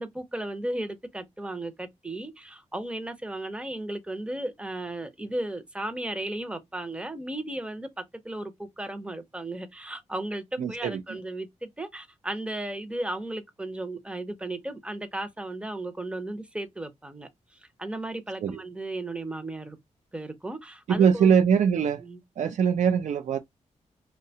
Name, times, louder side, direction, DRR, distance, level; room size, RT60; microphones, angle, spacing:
voice 1, 0.0-19.8 20.1-21.3 22.0-22.2, right 1 dB, 10° right, 0.5 m, -35 dB
voice 2, 10.6-11.2 18.4-18.6 20.9-22.0 22.4-23.4, right 7 dB, 75° right, 0.4 m, -22 dB
2.7 x 2.1 x 2.6 m
wide cardioid pair, 115°, 13 cm